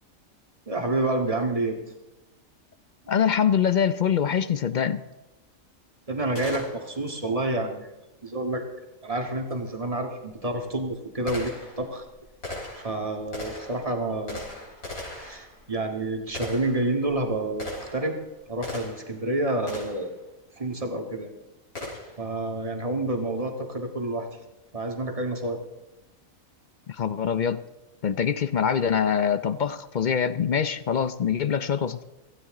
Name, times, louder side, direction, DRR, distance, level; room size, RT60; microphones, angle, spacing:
voice 1, 0.7-1.8 6.1-7.9 8.2-8.6 9.0-12.1 12.7-14.5 15.2-18.2 18.5-20.2 20.6-21.3 22.2-24.3 24.7-25.6, right 2 dB, 25° right, 3 dB, 2.0 m, -29 dB
voice 2, 3.1-5.0 26.9-27.6 28.0-32.0, left 7 dB, 55° left, 14 dB, 0.5 m, -24 dB
Gunshot gunfire, 6.3-7.2 9.5-9.6 10.3-19.2 19.7-20.1 21.7-22.3, left 2 dB, 85° left, 5.9 m, -39 dB
17.0 x 15.5 x 3.8 m, 1.0 s
omnidirectional pair, 1.4 m